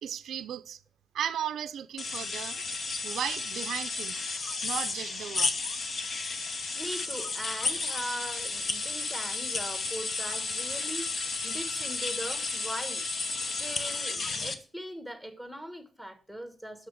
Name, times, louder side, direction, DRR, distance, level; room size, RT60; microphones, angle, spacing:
voice 1, 0.0-0.8 1.1-2.6 3.0-4.2 4.6-5.5, right 9 dB, 85° right, 0.5 m, -35 dB
sound 1, 2.0-14.5, left 3 dB, 45° left, 1.0 m, -33 dB
voice 2, 6.7-13.0 13.6-16.9, equal, 5° left, 1.3 m, -40 dB
6.4 x 6.0 x 6.4 m
wide cardioid pair, 130°, 0 cm